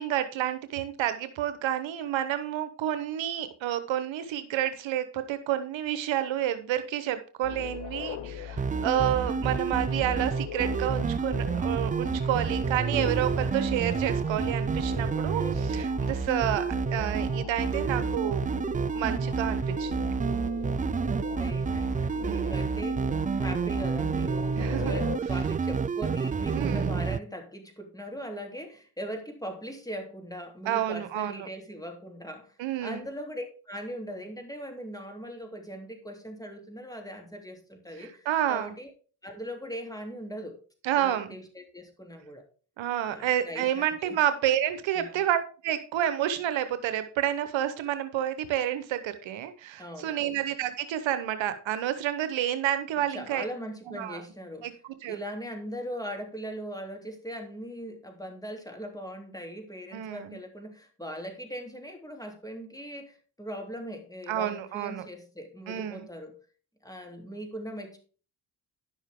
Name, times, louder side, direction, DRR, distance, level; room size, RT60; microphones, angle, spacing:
voice 1, 0.0-15.4 15.7-18.4 18.9-20.1 22.2-22.6 24.6-25.0 26.5-27.0 30.7-31.5 32.6-33.0 38.0-38.7 40.8-41.3 42.8-53.4 53.9-54.2 54.6-54.7 55.0-55.2 59.9-60.4 64.3-65.0 65.7-66.0, right 11 dB, 80° right, 11 dB, 1.0 m, -29 dB
sound 1, 7.4-25.2, left 8 dB, 90° left, 0.8 m, -39 dB
sound 2, 8.6-27.2, right 5 dB, 20° right, 0.3 m, -29 dB
voice 2, 15.3-15.8 21.3-38.9 39.2-40.6 40.9-42.4 43.0-44.2 44.9-45.2 49.8-50.4 53.1-54.8 55.1-66.3 66.8-68.0, equal, 10° left, 4 dB, 3.1 m, -40 dB
10.5 x 6.5 x 3.6 m, 0.38 s
supercardioid pair, 45°, 45 cm